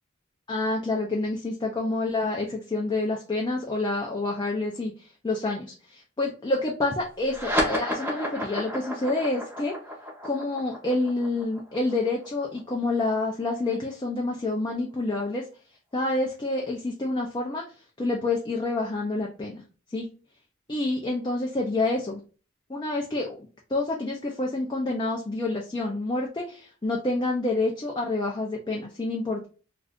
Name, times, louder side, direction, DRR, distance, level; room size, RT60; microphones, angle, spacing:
voice 1, 0.5-9.8 10.2-15.5 15.9-17.6 18.0-19.6 19.9-20.1 20.7-22.2 22.7-23.3 23.7-29.5, left 2 dB, 20° left, -1 dB, 0.4 m, -28 dB
sound 1, 7.2-14.1, equal, 10° right, 0.8 m, -32 dB
2.4 x 2.4 x 3.5 m, 0.36 s
head